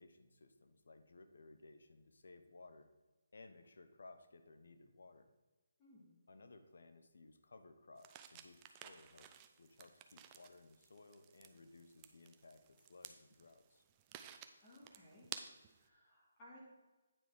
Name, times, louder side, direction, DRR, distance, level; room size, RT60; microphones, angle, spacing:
voice 1, 0.0-2.9 3.3-5.3 6.3-9.3 9.6-13.8, left 3 dB, 70° left, 9 dB, 0.9 m, -60 dB
voice 2, 5.8-6.1 14.6-15.3 15.7-16.6, left 1 dB, 20° left, -7 dB, 1.9 m, -61 dB
sound 1, 8.0-15.9, right 10 dB, 15° right, 0.4 m, -55 dB
9.0 x 5.1 x 4.7 m, 1.2 s
hypercardioid pair, 170°, 0 cm